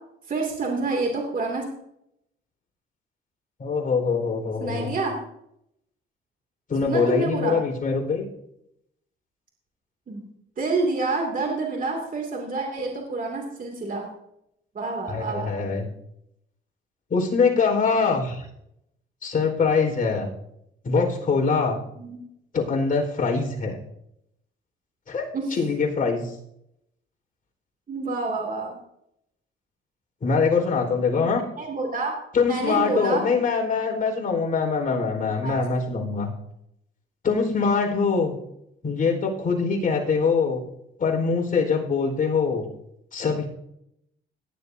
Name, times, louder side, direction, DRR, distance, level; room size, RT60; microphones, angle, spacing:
voice 1, 0.3-1.6 4.6-5.2 6.8-7.6 10.1-10.3 10.6-14.1 14.7-15.5 22.0-22.2 25.3-25.5 27.9-28.7 31.1-32.2 32.5-33.2 35.4-35.6, right 3 dB, 45° right, 1 dB, 2.7 m, -28 dB
voice 2, 3.6-4.9 6.7-8.2 15.1-15.8 17.1-18.4 19.2-20.3 20.8-21.8 22.5-23.8 25.1-26.3 30.2-31.4 32.3-36.3 37.2-38.3 38.8-40.7 41.0-42.6 43.1-43.5, left 5 dB, 45° left, 1 dB, 4.7 m, -23 dB
18.0 x 11.0 x 2.8 m, 0.77 s
cardioid pair, 90°, 20 cm